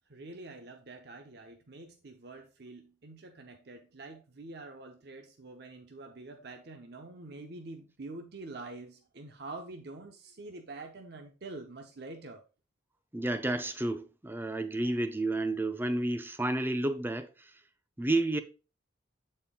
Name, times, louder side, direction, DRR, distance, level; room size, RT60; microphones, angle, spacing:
voice 1, 0.1-12.4, right 2 dB, 60° right, 0.8 m, -46 dB
voice 2, 13.1-17.5 18.0-18.4, right 2 dB, 10° right, 0.5 m, -31 dB
7.7 x 4.3 x 3.6 m
head